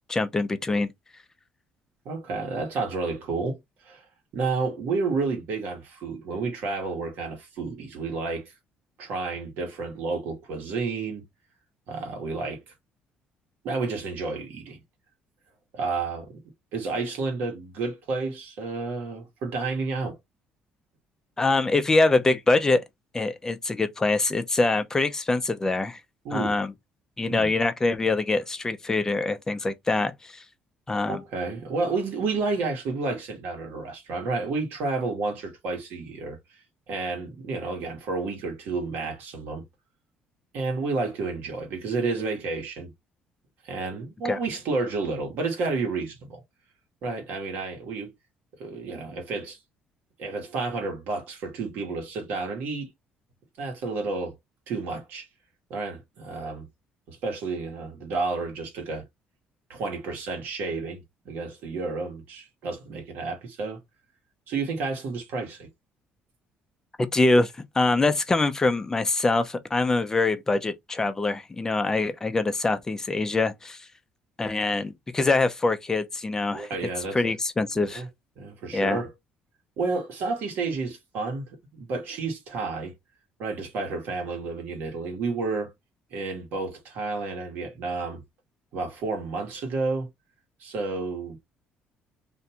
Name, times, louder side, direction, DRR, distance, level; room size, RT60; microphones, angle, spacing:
voice 1, 0.1-0.9 21.4-22.8 23.1-26.0 26.3-26.7 27.2-30.4 30.9-31.2 44.3-44.4 67.0-73.8 74.4-76.7 77.1-78.0 78.7-79.0, left 3 dB, 15° left, 0.4 m, -24 dB
voice 2, 2.0-3.6 3.8-4.0 4.3-8.5 9.0-11.2 11.9-12.6 13.6-14.8 15.7-16.4 16.7-20.2 26.2-26.6 27.3-27.5 31.1-36.4 36.9-39.6 40.5-42.9 43.6-46.4 47.0-48.1 48.6-49.6 50.2-52.9 53.6-54.3 54.7-55.3 55.7-56.7 57.1-59.0 59.7-63.8 64.5-65.7 76.5-77.3 77.7-78.1 78.4-79.1 79.8-81.4 81.7-82.9 83.4-85.7 86.1-88.2 88.7-90.1 90.6-91.4, right 3 dB, 70° right, 1.2 m, -30 dB
2.5 x 2.2 x 2.8 m
cardioid pair, 120°, 3 cm